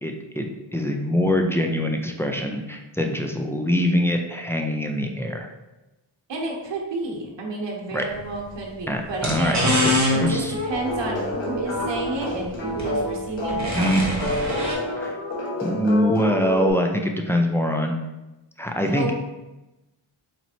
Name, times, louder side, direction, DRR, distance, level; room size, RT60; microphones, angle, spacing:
voice 1, 0.0-5.5 7.9-8.1 8.9-9.9 10.2-10.6 13.7-14.0 15.0-15.2 15.6-18.0 18.6-19.1, left 1 dB, 5° left, 2 dB, 0.4 m, -23 dB
voice 2, 6.3-9.7 10.1-14.1 18.8-19.1, right 3 dB, 60° right, -2 dB, 0.9 m, -30 dB
sound 1, 8.1-8.2 9.1-14.7, left 1 dB, 35° right, 1.1 m, -25 dB
sound 2, 10.7-16.7, left 2 dB, 60° left, 1.3 m, -29 dB
4.1 x 3.0 x 2.7 m, 1.0 s
cardioid pair, 60°, 49 cm